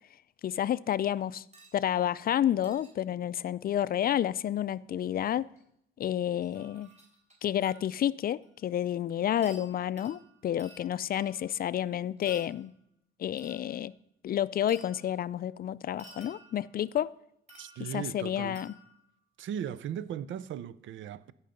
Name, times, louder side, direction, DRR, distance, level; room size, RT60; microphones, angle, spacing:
voice 1, 0.4-1.4 1.7-5.5 6.0-6.9 7.4-12.7 13.2-13.9 14.2-17.2 17.9-18.7, left 11 dB, 50° left, 0.4 m, -30 dB
sound 1, 1.5-1.8 2.6-2.9 5.1-5.2 5.6-5.7 6.4-8.0 8.4-8.5 9.4-11.6 12.2-12.6 13.4-13.8 14.7-15.2 16.0-16.8 17.5-18.1 18.6-19.1 19.8-19.9, equal, 35° right, 3.9 m, -55 dB
voice 2, 17.6-18.6 19.4-21.3, right 9 dB, 75° right, 0.6 m, -37 dB
15.0 x 5.6 x 5.1 m
cardioid pair, 90°, 20 cm